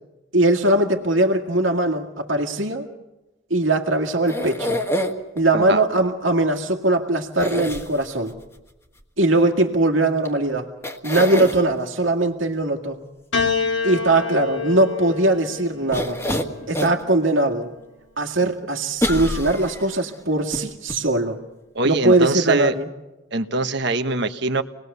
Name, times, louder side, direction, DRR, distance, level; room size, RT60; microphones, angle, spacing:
voice 1, 0.3-2.9 3.5-4.8 5.4-8.4 9.2-10.7 11.0-13.0 13.8-16.2 16.7-17.7 18.2-21.4 21.8-22.9, right 2 dB, 80° right, 2 dB, 2.1 m, -20 dB
sound 1, 4.3-5.4 7.4-8.3 10.2-10.3 10.8-11.6 15.9-17.0 17.5-17.6 19.0-20.0 20.5-20.6 20.9-21.0, equal, 15° left, 1.6 m, -26 dB
Piano, 13.3-17.8 18.8-19.6, left 5 dB, 75° left, 2.9 m, -29 dB
voice 2, 21.7-22.7 23.3-24.6, right 3 dB, 60° right, 8 dB, 1.3 m, -23 dB
27.5 x 20.0 x 6.9 m, 1.0 s
head